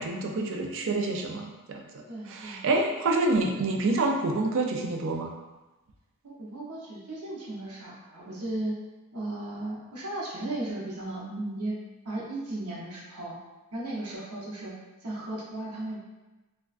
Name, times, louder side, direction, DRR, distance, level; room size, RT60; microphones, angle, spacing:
voice 1, 0.0-2.0 2.3-5.3, right 2 dB, 60° right, 2 dB, 0.4 m, -27 dB
voice 2, 2.1-2.6 6.2-8.7 9.1-11.8 12.0-13.4 13.7-14.7 15.0-16.0, right 1 dB, 85° right, -4 dB, 0.8 m, -35 dB
3.4 x 2.2 x 2.4 m, 1.1 s
head